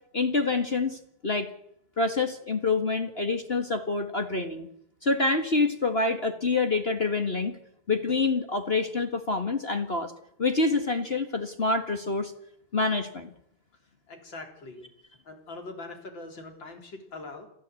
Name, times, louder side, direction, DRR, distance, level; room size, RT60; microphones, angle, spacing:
voice 1, 0.1-1.5 2.0-4.7 5.0-7.6 7.9-10.1 10.4-12.3 12.7-13.3, left 3 dB, 30° left, 7 dB, 1.6 m, -27 dB
voice 2, 14.1-14.9 15.2-17.5, left 3 dB, 60° left, 4 dB, 4.5 m, -42 dB
27.5 x 15.0 x 8.4 m, 0.73 s
omnidirectional pair, 2.4 m